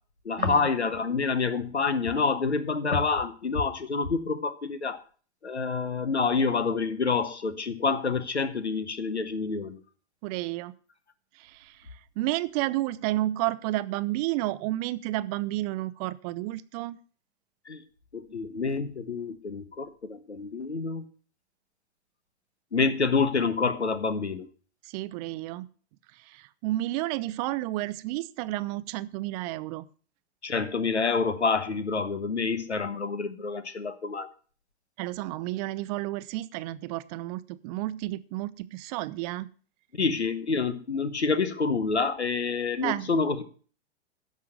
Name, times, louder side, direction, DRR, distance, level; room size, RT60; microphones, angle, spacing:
voice 1, 0.2-5.0 5.4-9.8 17.7-17.8 18.1-21.0 22.7-24.5 30.4-34.3 40.0-43.4, left 4 dB, 85° left, 12 dB, 1.3 m, -27 dB
voice 2, 10.2-10.7 11.4-11.8 12.2-17.0 24.9-25.7 26.3-29.9 35.0-39.5 42.8-43.1, right 17 dB, 35° right, 17 dB, 0.6 m, -31 dB
10.5 x 6.6 x 6.5 m, 0.41 s
figure-of-eight pair, 100°, 33 cm